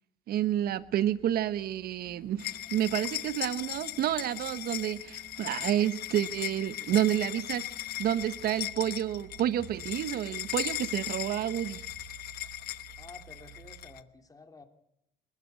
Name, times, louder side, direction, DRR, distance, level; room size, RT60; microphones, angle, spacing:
voice 1, 0.3-7.6 8.0-11.8, right 11 dB, 65° right, 16 dB, 1.0 m, -29 dB
sound 1, 0.7-14.0, right 11 dB, 35° right, 4.7 m, -54 dB
sound 2, 2.0-10.0, right 1 dB, 10° right, 4.3 m, -56 dB
sound 3, 2.4-14.0, left 15 dB, 70° left, 1.2 m, -38 dB
voice 2, 13.0-14.6, left 3 dB, 20° left, 8 dB, 2.9 m, -51 dB
27.5 x 12.5 x 9.4 m, 0.80 s
cardioid pair, 110°, 17 cm